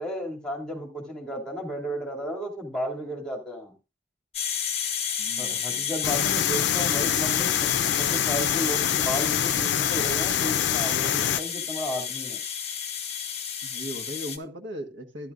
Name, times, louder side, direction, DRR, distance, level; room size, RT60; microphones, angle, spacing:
voice 1, 0.0-3.7 5.4-7.5 7.8-12.4, equal, 5° left, -1 dB, 2.5 m, -33 dB
sound 1, 4.3-14.4, left 8 dB, 35° left, 1.0 m, -31 dB
voice 2, 5.2-6.1 13.6-15.3, equal, 80° right, 4 dB, 1.4 m, -38 dB
sound 2, 6.0-11.4, left 10 dB, 65° left, 0.4 m, -25 dB
12.0 x 11.0 x 2.5 m, 0.29 s
head